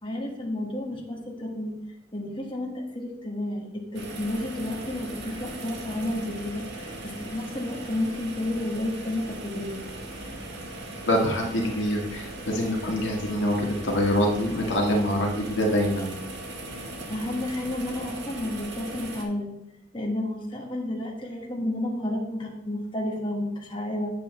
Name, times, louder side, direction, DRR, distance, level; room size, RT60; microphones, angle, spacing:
voice 1, 0.0-1.8 2.1-9.8 16.7-19.5 19.9-24.1, left 1 dB, 25° left, -2 dB, 1.6 m, -31 dB
sound 1, 3.9-19.2, right 1 dB, 65° right, 1.5 m, -39 dB
voice 2, 11.1-16.1, equal, 80° left, 0 dB, 1.7 m, -25 dB
8.3 x 7.7 x 3.2 m, 0.82 s
head